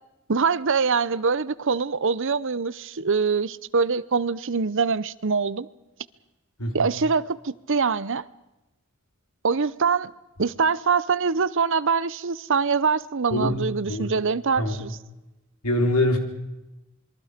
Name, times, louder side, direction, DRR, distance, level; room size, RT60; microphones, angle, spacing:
voice 1, 0.3-5.7 6.7-8.2 9.4-10.1 10.4-14.9, right 5 dB, 60° right, 0.7 m, -24 dB
voice 2, 6.6-6.9 13.3-13.6 13.9-14.1 14.6-14.9 15.6-16.2, left 1 dB, 90° left, 4.0 m, -24 dB
27.0 x 22.5 x 5.1 m
head